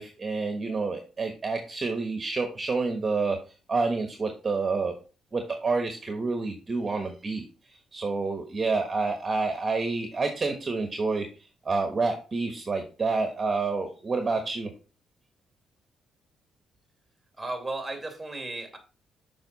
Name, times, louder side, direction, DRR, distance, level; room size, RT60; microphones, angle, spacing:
voice 1, 0.0-3.4 3.7-4.9 5.3-14.7, right 3 dB, 30° right, 1.2 m, -28 dB
voice 2, 17.4-18.8, right 2 dB, 10° right, 2.2 m, -34 dB
6.8 x 5.2 x 4.0 m
cardioid pair, 90°, 0 cm